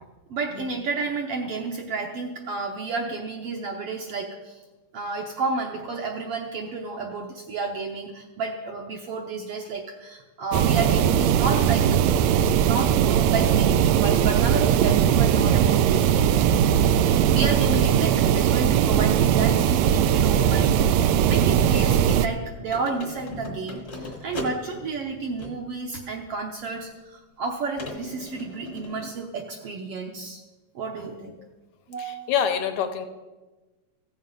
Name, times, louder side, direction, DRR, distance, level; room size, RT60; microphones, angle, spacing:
voice 1, 0.3-4.6 4.9-12.0 12.7-16.5 17.3-30.4 30.7-31.3 31.9-32.3, right 4 dB, 65° right, 2 dB, 1.5 m, -31 dB
sound 1, 10.5-22.3, right 9 dB, 85° right, 1.5 m, -20 dB
sound 2, 18.4-25.8 26.6-26.7 27.8-29.1, left 1 dB, 35° left, 1.1 m, -40 dB
voice 2, 32.0-33.1, left 8 dB, 75° left, 7 dB, 2.1 m, -27 dB
15.0 x 7.3 x 5.2 m, 1.2 s
omnidirectional pair, 3.5 m